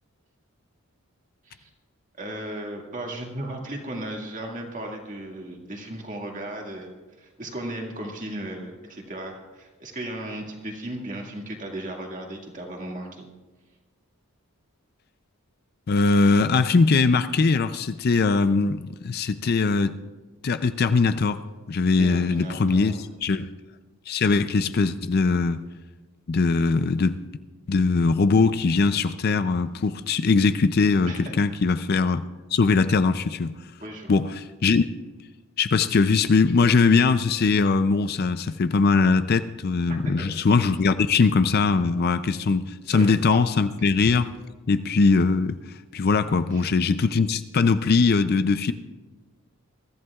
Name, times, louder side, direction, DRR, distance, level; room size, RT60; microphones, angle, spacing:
voice 1, 2.2-6.9 7.2-13.3 22.0-23.0 31.0-31.3 33.8-34.2 39.9-40.2 42.9-43.1 46.5-46.7, right 1 dB, 35° right, 0 dB, 1.9 m, -36 dB
voice 2, 15.9-20.0 20.4-21.4 21.7-23.5 24.1-25.6 26.3-27.2 27.7-32.2 32.5-33.5 34.1-34.8 35.6-44.3 44.7-45.6 45.9-48.7, left 4 dB, 45° left, 12 dB, 0.4 m, -21 dB
23.0 x 14.0 x 2.4 m, 1.3 s
head